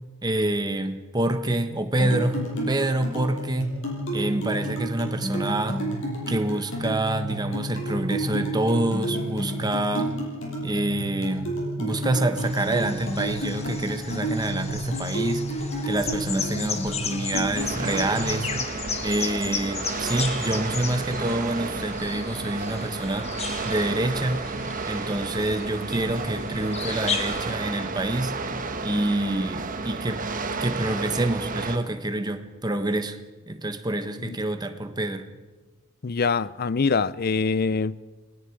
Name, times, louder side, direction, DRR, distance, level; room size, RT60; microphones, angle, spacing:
voice 1, 0.2-3.7 4.1-5.8 6.3-10.1 10.6-18.5 19.0-24.5 24.9-28.4 28.8-30.3 30.6-33.2 33.5-35.3, right 1 dB, 20° right, 1.3 m, -27 dB
sound 1, 2.0-18.5, right 1 dB, 70° left, 7.0 m, -30 dB
sound 2, 12.4-27.6, left 5 dB, 30° left, 1.5 m, -35 dB
sound 3, 17.6-31.8, right 4 dB, 45° right, 1.4 m, -32 dB
voice 2, 36.0-38.0, left 4 dB, 50° left, 0.6 m, -24 dB
29.5 x 20.5 x 4.8 m
head